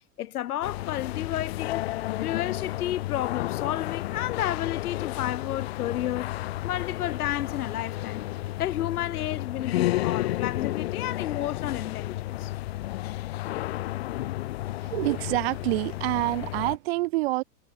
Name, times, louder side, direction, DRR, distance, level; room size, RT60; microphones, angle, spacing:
voice 1, 0.2-1.8 2.2-8.2 8.6-12.5, left 13 dB, 70° left, 4.4 m, -31 dB
sound 1, 0.6-16.8, left 16 dB, 40° left, 0.7 m, -32 dB
voice 2, 14.8-17.4, right 21 dB, 40° right, 3.1 m, -27 dB
supercardioid pair, 180°, 46 cm